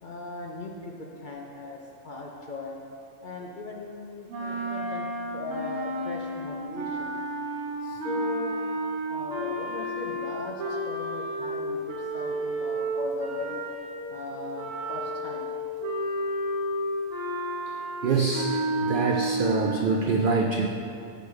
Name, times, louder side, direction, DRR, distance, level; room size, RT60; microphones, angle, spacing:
voice 1, 0.0-2.8 3.2-7.1 7.8-8.6 9.1-13.6 14.1-15.5, left 2 dB, 55° left, -1 dB, 0.5 m, -38 dB
sound 1, 4.3-14.1 14.5-19.8, right 1 dB, 70° right, 1.7 m, -31 dB
voice 2, 18.0-20.7, right 4 dB, 85° right, 2 dB, 0.4 m, -25 dB
6.9 x 6.2 x 4.7 m, 2.6 s
omnidirectional pair, 1.4 m